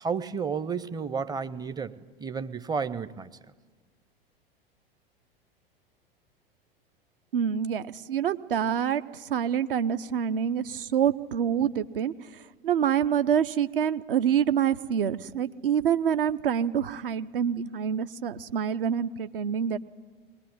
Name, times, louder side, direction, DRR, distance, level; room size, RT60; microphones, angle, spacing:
voice 1, 0.0-3.3, right 6 dB, 15° right, 13 dB, 0.6 m, -32 dB
voice 2, 7.3-12.1 12.6-19.8, right 8 dB, 65° right, 12 dB, 0.8 m, -26 dB
21.0 x 20.0 x 9.4 m, 1.5 s
figure-of-eight pair, 85°, 30 cm